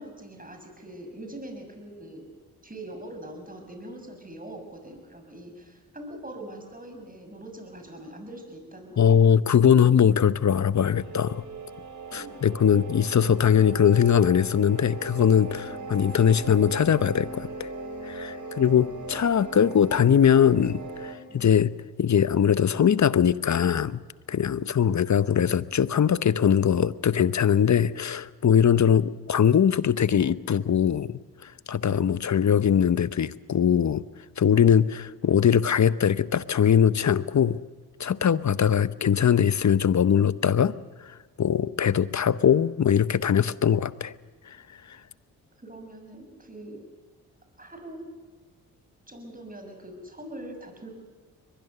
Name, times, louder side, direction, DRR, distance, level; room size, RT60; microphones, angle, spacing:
voice 1, 0.0-2.3 2.6-9.2 12.1-12.5 15.6-15.9 18.4-18.6 19.1-19.2 21.3-21.4 24.5-24.7 45.6-46.8 47.6-48.1 49.1-50.9, right 1 dB, 20° right, 4 dB, 6.8 m, -43 dB
voice 2, 9.0-11.4 12.1-17.7 18.0-21.7 22.0-24.0 24.3-34.0 34.4-37.6 38.0-40.7 41.4-44.1, left 8 dB, 45° left, 16 dB, 0.9 m, -21 dB
sound 1, 10.9-21.2, right 3 dB, 45° right, 3.8 m, -38 dB
22.5 x 20.5 x 6.8 m, 1.5 s
supercardioid pair, 50°, 41 cm